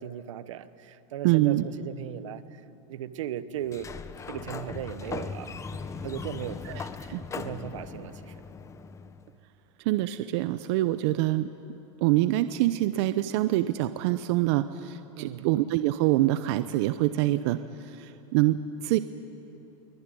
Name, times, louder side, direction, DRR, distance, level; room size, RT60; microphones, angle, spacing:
voice 1, 0.0-2.6 2.9-3.9 4.3-5.5 6.0-6.6 7.3-8.4 15.2-15.5, right 11 dB, 80° right, 13 dB, 1.2 m, -37 dB
voice 2, 1.2-1.6 6.7-7.2 9.8-11.5 12.0-19.0, right 15 dB, 60° right, 12 dB, 0.8 m, -25 dB
Sliding door, 3.6-9.3, left 5 dB, 20° left, 1.1 m, -39 dB
23.0 x 22.0 x 9.3 m, 2.9 s
supercardioid pair, 125°, 16 cm